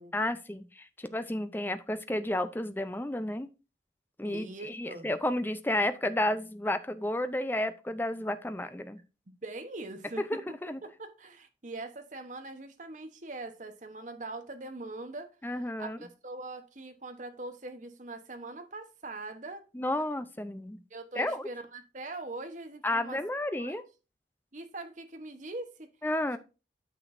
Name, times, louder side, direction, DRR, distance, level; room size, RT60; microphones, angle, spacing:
voice 1, 0.1-3.5 4.2-9.0 10.3-10.8 15.4-16.0 19.7-20.8 21.2-21.5 22.8-23.8 26.0-26.4, left 1 dB, 10° left, 0.5 m, -32 dB
voice 2, 4.2-5.1 9.4-10.5 11.0-15.3 15.6-19.6 20.0-20.1 20.9-23.2 23.5-23.8 24.5-25.9, right 2 dB, 40° right, 1.0 m, -42 dB
9.1 x 6.1 x 2.6 m
head